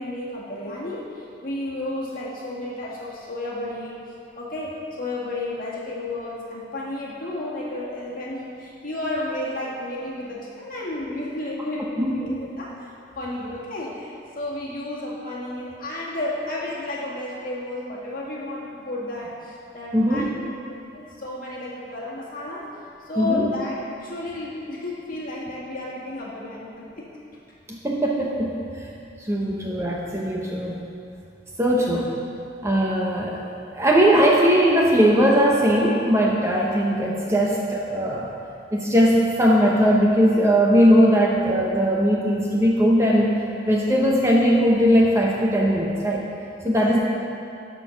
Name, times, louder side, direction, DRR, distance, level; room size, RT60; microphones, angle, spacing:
voice 1, 0.0-4.0 4.4-12.9 13.1-22.7 23.0-27.1 46.6-46.9, left 2 dB, 45° left, -5 dB, 1.9 m, -32 dB
voice 2, 12.0-12.4 19.9-20.3 23.2-23.5 27.7-28.6 29.2-30.8 31.6-32.1 32.6-33.4 33.7-38.3 38.7-43.3 43.6-46.2 46.6-47.0, equal, 15° right, -2 dB, 0.8 m, -19 dB
12.0 x 4.6 x 5.7 m, 2.7 s
head